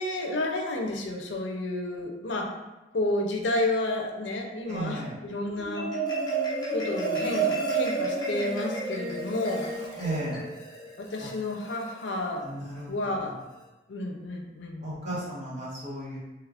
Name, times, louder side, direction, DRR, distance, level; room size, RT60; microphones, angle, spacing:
voice 1, 0.0-2.5 2.9-5.9 6.7-9.7 11.0-12.5 12.9-13.4 13.9-14.9, left 2 dB, 85° left, 2 dB, 0.5 m, -31 dB
voice 2, 4.7-5.1 10.0-10.4 12.4-12.9 14.8-16.2, right 1 dB, 40° right, -8 dB, 1.2 m, -34 dB
Marimba xylophone, 5.5-12.1, right 3 dB, 25° left, 0.7 m, -31 dB
3.1 x 2.4 x 3.3 m, 1.0 s
head